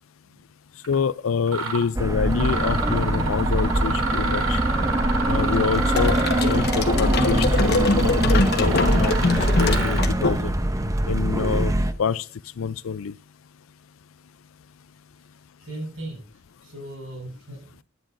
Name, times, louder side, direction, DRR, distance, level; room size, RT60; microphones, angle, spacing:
Mechanisms, 0.8-1.0 1.5-1.9 2.3-10.1, right 3 dB, 90° right, 2.8 m, -29 dB
voice 1, 0.9-4.6 5.3-10.5 11.1-11.7 12.0-12.3 12.6-13.1, left 6 dB, 80° left, 0.5 m, -27 dB
sound 1, 1.9-11.9, right 1 dB, 15° right, 0.7 m, -23 dB
sound 2, 6.0-10.8, left 2 dB, 50° left, 1.3 m, -23 dB
voice 2, 15.6-17.8, right 1 dB, 70° right, 6.7 m, -38 dB
16.5 x 11.0 x 2.6 m
head